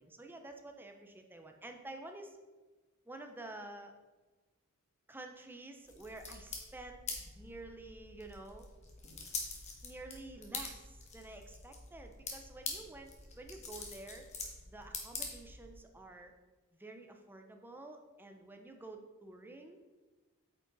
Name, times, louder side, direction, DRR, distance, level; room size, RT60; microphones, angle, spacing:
voice 1, 0.0-2.4 3.1-3.9 5.1-7.0 7.4-8.7 9.8-13.1 13.4-14.3 14.7-16.3 16.7-19.8, right 2 dB, 10° right, 4 dB, 0.6 m, -50 dB
sound 1, 5.8-15.8, left 4 dB, 30° left, 1.2 m, -45 dB
8.6 x 5.1 x 3.9 m, 1.2 s
head